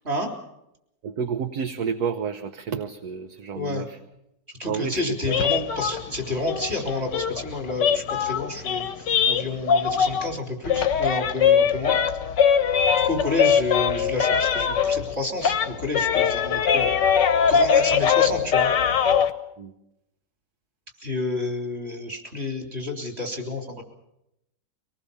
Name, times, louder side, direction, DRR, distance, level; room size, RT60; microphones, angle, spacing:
voice 1, 1.0-4.0 4.6-5.5 19.6-19.7, right 6 dB, 65° right, 7 dB, 1.5 m, -30 dB
voice 2, 3.5-3.9 4.6-12.0 13.0-16.9 17.5-18.7 21.0-23.8, left 2 dB, 35° right, 3 dB, 4.0 m, -30 dB
sound 1, 5.3-10.4 10.6-15.1 15.4-19.3, left 7 dB, 90° left, 1.8 m, -22 dB
25.0 x 19.0 x 7.1 m, 0.84 s
omnidirectional pair, 1.8 m